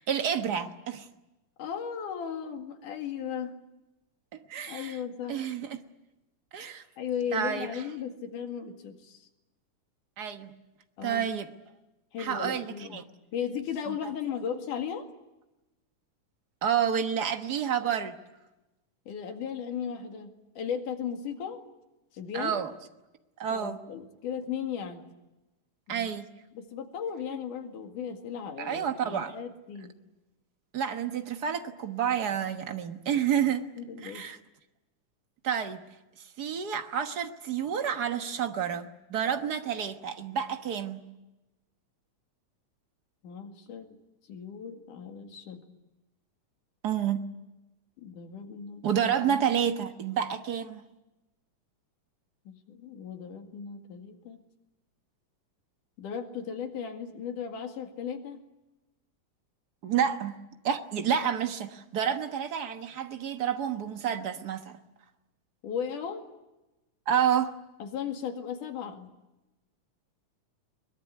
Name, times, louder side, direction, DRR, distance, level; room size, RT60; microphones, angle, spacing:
voice 1, 0.1-1.1 4.5-5.0 5.3-5.8 6.5-6.8 7.3-7.7 10.2-10.5 11.0-11.5 12.2-12.7 12.9-13.0 16.6-18.2 22.3-22.7 23.4-23.8 25.9-26.3 28.6-29.3 30.7-33.6 34.0-34.4 35.4-35.8 36.4-41.0 46.8-47.3 48.8-50.8 59.8-60.4 60.6-64.8 67.1-67.5, right 8 dB, 60° right, 7 dB, 1.0 m, -29 dB
voice 2, 1.6-3.6 4.7-5.5 7.0-9.3 11.0-11.3 12.1-13.1 13.3-15.1 19.1-20.3 20.6-21.6 22.1-22.6 23.5-25.0 25.9-26.1 26.6-30.0 33.4-34.3 43.2-44.0 44.3-45.7 48.0-49.0 52.5-54.4 56.0-58.4 65.6-66.2 67.8-69.1, left 7 dB, 75° left, 5 dB, 3.5 m, -36 dB
22.5 x 21.5 x 9.6 m, 1.0 s
omnidirectional pair, 3.7 m